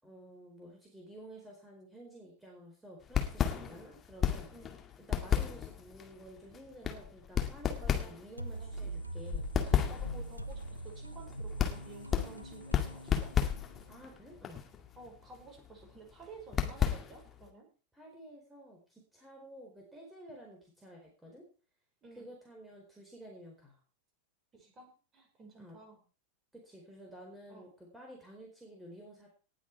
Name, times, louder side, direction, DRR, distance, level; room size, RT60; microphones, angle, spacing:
voice 1, 0.0-4.5 5.0-9.5 13.9-14.6 17.9-21.4 22.2-23.8 25.6-25.8 26.5-29.3, equal, 5° right, -1 dB, 4.3 m, -52 dB
sound 1, 3.0-17.5, left 8 dB, 25° left, 2.0 m, -34 dB
voice 2, 7.8-8.1 8.6-8.7 9.7-13.3 15.0-17.7 22.0-22.3 24.5-26.0 27.5-27.7, right 3 dB, 25° right, 2 dB, 5.4 m, -53 dB
sound 2, 8.4-14.0, right 2 dB, 90° right, 0.7 m, -43 dB
19.0 x 7.6 x 4.7 m, 0.35 s
figure-of-eight pair, 90°, 0 cm